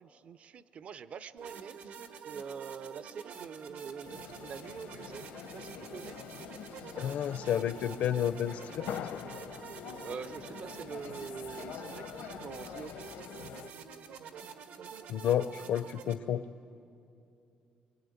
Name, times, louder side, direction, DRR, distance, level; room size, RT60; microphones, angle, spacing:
voice 1, 0.0-2.0 2.3-5.3 5.5-6.2 10.0-13.3, right 6 dB, 45° right, 15 dB, 0.6 m, -45 dB
sound 1, 1.4-16.1, right 6 dB, 75° right, 1.7 m, -47 dB
sound 2, 4.0-13.7, left 9 dB, 90° left, 1.0 m, -45 dB
voice 2, 7.0-9.1 15.1-16.4, left 10 dB, 65° left, 12 dB, 0.6 m, -31 dB
25.0 x 24.0 x 9.4 m, 2.7 s
cardioid pair, 155°, 3 cm